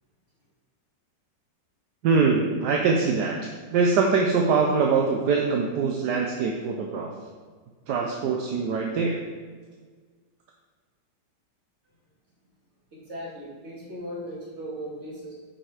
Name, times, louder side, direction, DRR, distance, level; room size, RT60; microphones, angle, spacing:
voice 1, 2.0-7.1 7.9-9.2, right 4 dB, 70° right, 0 dB, 1.3 m, -23 dB
voice 2, 12.9-15.3, equal, 40° right, -5 dB, 2.6 m, -37 dB
9.0 x 5.3 x 4.9 m, 1.5 s
omnidirectional pair, 1.9 m